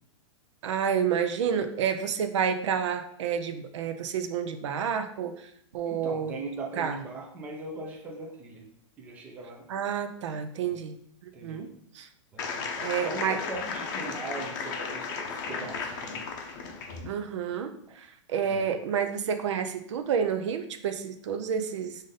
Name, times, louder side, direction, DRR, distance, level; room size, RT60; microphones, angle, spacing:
voice 1, 0.6-5.3 5.7-6.3 6.8-7.0 9.7-11.0 11.4-11.7 11.9-12.1 12.8-13.4 17.1-17.7 18.0-22.0, right 7 dB, 65° right, 8 dB, 0.5 m, -29 dB
voice 2, 5.8-8.7 9.0-9.7 10.6-10.8 11.3-11.7 12.3-16.2 18.4-18.7, right 2 dB, 10° right, -1 dB, 0.4 m, -40 dB
sound 1, 12.4-17.1, left 5 dB, 40° left, 0.6 m, -35 dB
5.0 x 2.6 x 3.9 m, 0.68 s
supercardioid pair, 170°, 16 cm